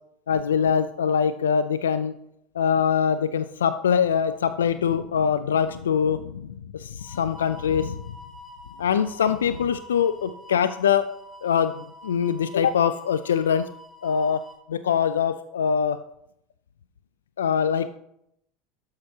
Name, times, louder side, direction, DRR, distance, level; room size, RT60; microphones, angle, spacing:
voice 1, 0.3-2.1 2.6-8.2 8.8-11.1 11.4-13.7 14.0-14.4 14.7-16.0 17.4-17.9, left 7 dB, 90° left, 12 dB, 0.3 m, -23 dB
sound 1, 7.0-14.6, left 1 dB, ahead, 1.8 m, -46 dB
12.0 x 6.6 x 2.8 m, 0.78 s
hypercardioid pair, 90°, 0 cm